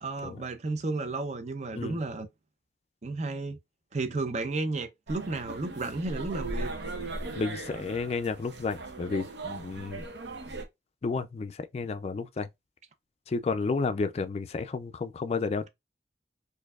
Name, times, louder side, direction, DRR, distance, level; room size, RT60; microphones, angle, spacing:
voice 1, 0.0-2.3 3.0-3.6 3.9-6.7, right 3 dB, 40° right, 0.5 m, -32 dB
sound 1, 5.1-10.6, right 2 dB, 80° right, 0.8 m, -38 dB
voice 2, 7.4-10.1 11.0-12.5 13.3-15.7, left 4 dB, 35° left, 0.3 m, -31 dB
4.4 x 2.6 x 2.3 m
head